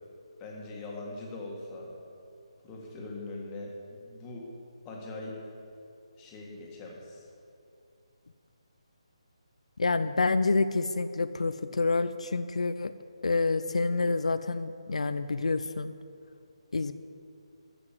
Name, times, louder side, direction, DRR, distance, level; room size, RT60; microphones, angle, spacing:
voice 1, 0.4-1.9 2.6-4.5 4.8-5.4 6.2-7.3, left 2 dB, 15° left, -2 dB, 1.7 m, -41 dB
voice 2, 9.8-12.9 13.2-15.9 16.7-16.9, left 3 dB, 85° left, 11 dB, 0.5 m, -28 dB
14.0 x 5.9 x 7.6 m, 2.5 s
hypercardioid pair, 165°, 3 cm